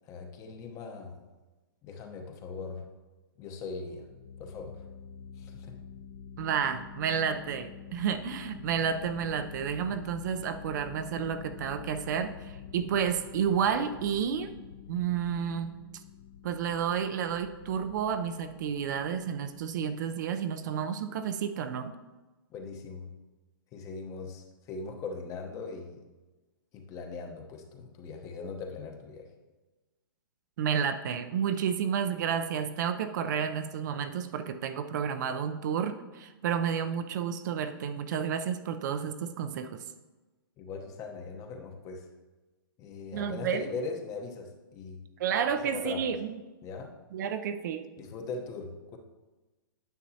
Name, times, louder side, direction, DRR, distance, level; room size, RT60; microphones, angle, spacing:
voice 1, 0.0-1.2 1.8-2.9 3.4-4.1 4.4-4.8 5.4-5.8 22.5-23.1 23.7-26.0 26.7-29.3 40.6-42.1 42.8-45.0 45.7-46.1 46.6-47.0 48.0-49.0, left 4 dB, 25° left, 4 dB, 0.9 m, -40 dB
sound 1, 3.9-20.2, left 8 dB, 65° left, 0.5 m, -47 dB
voice 2, 6.4-14.5 14.9-15.7 16.4-21.9 30.6-39.8 43.1-43.6 45.2-46.4 47.1-47.8, right 7 dB, 55° right, 9 dB, 0.5 m, -31 dB
9.5 x 6.7 x 2.8 m, 1.2 s
hypercardioid pair, 135°, 12 cm